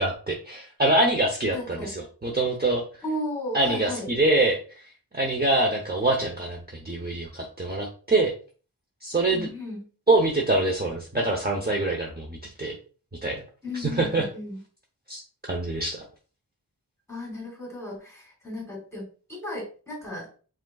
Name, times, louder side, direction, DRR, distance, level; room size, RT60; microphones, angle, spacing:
voice 1, 0.0-2.8 3.5-4.6 5.1-8.3 9.0-9.5 10.1-12.8 13.2-13.4 13.7-14.3 15.1-15.2 15.5-16.0, right 2 dB, 25° right, 0 dB, 0.8 m, -24 dB
voice 2, 1.5-1.9 3.0-4.1 9.3-9.8 13.6-14.6 17.1-19.0 19.3-20.3, left 1 dB, 5° left, 0 dB, 2.3 m, -34 dB
5.1 x 3.7 x 2.3 m, 0.39 s
wide cardioid pair, 55°, 39 cm